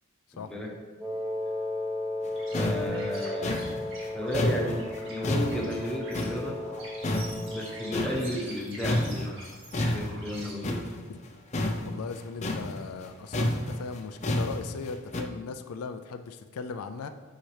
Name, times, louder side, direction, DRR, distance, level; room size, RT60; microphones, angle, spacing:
voice 1, 0.3-0.7 2.5-3.6 4.1-6.6 7.5-9.4 9.7-10.9, left 1 dB, 5° left, -3 dB, 1.1 m, -33 dB
Wind instrument woodwind instrument, 1.0-8.3, left 2 dB, 15° right, 1.0 m, -35 dB
sound 1, 2.3-2.4 2.5-6.8 7.0-8.6 8.8-15.2, left 1 dB, 30° left, 0.6 m, -31 dB
sound 2, 2.3-10.5, right 1 dB, 55° right, 2.0 m, -45 dB
voice 2, 11.8-17.1, left 5 dB, 75° left, 8 dB, 0.4 m, -38 dB
8.9 x 5.7 x 3.3 m, 1.3 s
head